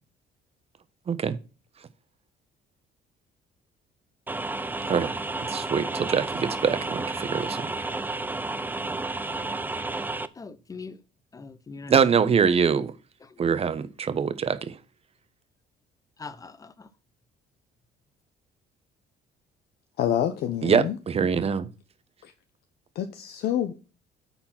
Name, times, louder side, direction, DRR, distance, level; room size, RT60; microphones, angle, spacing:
sound 1, 4.3-10.3, right 2 dB, 10° right, 0.6 m, -31 dB
voice 1, 5.4-7.7 11.9-12.9 13.4-14.8 20.6-21.7, right 6 dB, 35° right, 1.0 m, -24 dB
voice 2, 10.4-11.0 11.3-12.2 13.3-13.4 16.2-16.9, left 4 dB, 20° left, 0.8 m, -41 dB
voice 3, 20.0-21.0 22.2-22.3 22.9-23.7, left 10 dB, 70° left, 0.9 m, -27 dB
10.0 x 4.4 x 5.9 m
cardioid pair, 110°, 17 cm